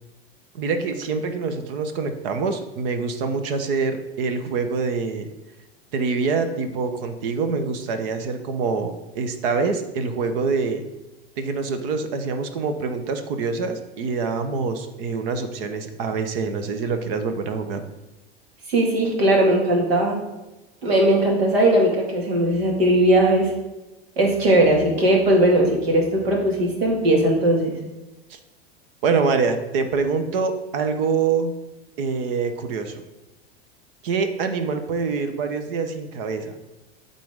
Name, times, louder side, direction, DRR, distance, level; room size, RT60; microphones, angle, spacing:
voice 1, 0.5-5.3 5.9-10.8 11.4-17.8 28.3-28.4 29.0-31.5 32.0-33.0 34.0-36.5, right 4 dB, 65° right, 8 dB, 1.1 m, -25 dB
voice 2, 18.7-20.2 20.8-23.5 24.2-27.8, right 1 dB, 80° right, 0 dB, 2.2 m, -19 dB
11.5 x 4.0 x 3.7 m, 1.0 s
hypercardioid pair, 95°, 31 cm